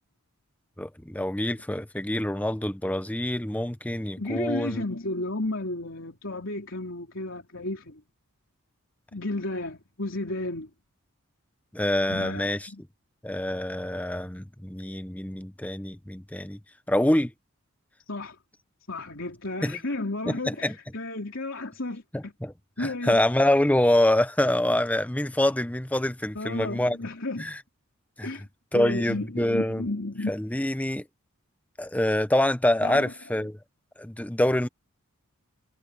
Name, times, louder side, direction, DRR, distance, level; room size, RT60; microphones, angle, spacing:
voice 1, 0.8-4.8 11.7-12.6 13.2-16.6 16.9-17.3 19.6-19.8 20.5-20.7 22.1-22.5 22.8-27.0 27.4-27.6 28.2-28.3 28.7-29.9 30.3-31.0 31.8-33.6 34.0-34.7, left 1 dB, 5° left, 0.7 m, -25 dB
voice 2, 4.2-8.0 9.1-10.7 12.1-12.8 18.1-18.4 18.9-22.3 22.8-23.2 26.3-27.5 28.2-28.4 28.7-30.3 32.8-33.1, left 2 dB, 60° left, 4.0 m, -33 dB
head